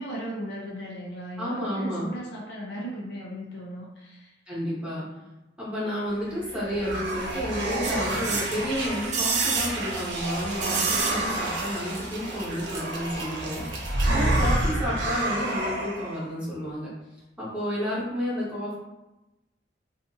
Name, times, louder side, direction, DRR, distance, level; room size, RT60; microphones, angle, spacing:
voice 1, 0.0-4.3 14.0-14.8, right 1 dB, 70° left, -3 dB, 0.7 m, -36 dB
voice 2, 1.4-2.1 4.5-5.1 5.6-16.9 17.4-18.7, equal, 5° right, -9 dB, 1.0 m, -31 dB
sound 1, 6.2-16.2, right 1 dB, 80° right, 0.6 m, -29 dB
sound 2, 7.8-11.6 11.9-12.0, right 5 dB, 40° right, 0.4 m, -30 dB
2.6 x 2.5 x 2.5 m, 1.0 s
head